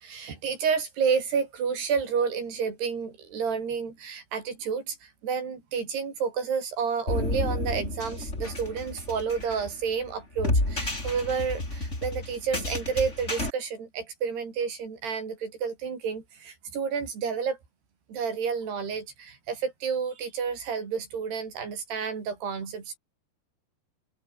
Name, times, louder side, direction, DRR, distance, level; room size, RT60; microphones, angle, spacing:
voice 1, 0.0-17.6 18.1-23.0, right 6 dB, 65° right, 7.3 m, -30 dB
sound 1, 7.1-13.5, left 1 dB, 15° left, 6.6 m, -31 dB
open air
omnidirectional pair, 5.1 m